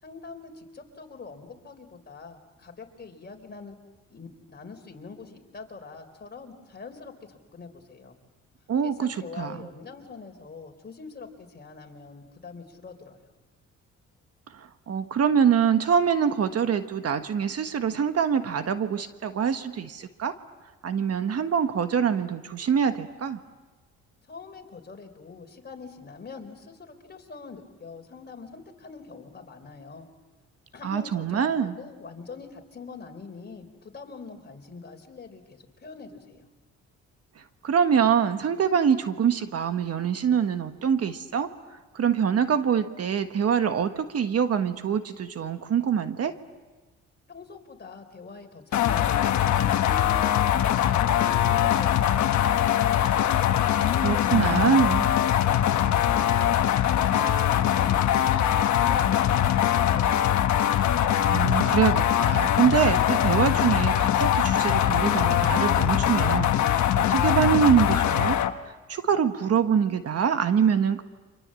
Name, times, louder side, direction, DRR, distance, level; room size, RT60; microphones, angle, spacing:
voice 1, 0.0-3.8 4.1-8.2 8.8-13.3 24.2-30.1 30.7-36.5 47.3-53.3 53.8-58.4 58.7-60.4, left 4 dB, 35° left, 4 dB, 3.9 m, -43 dB
voice 2, 8.7-9.6 14.5-20.3 20.8-23.4 30.8-31.7 37.6-41.5 41.9-46.3 54.0-55.0 61.3-68.4 68.9-71.0, right 7 dB, 55° right, 9 dB, 1.4 m, -24 dB
sound 1, 48.7-68.5, left 10 dB, 70° left, 1.3 m, -22 dB
30.0 x 25.5 x 7.7 m, 1.2 s
cardioid pair, 90°, 30 cm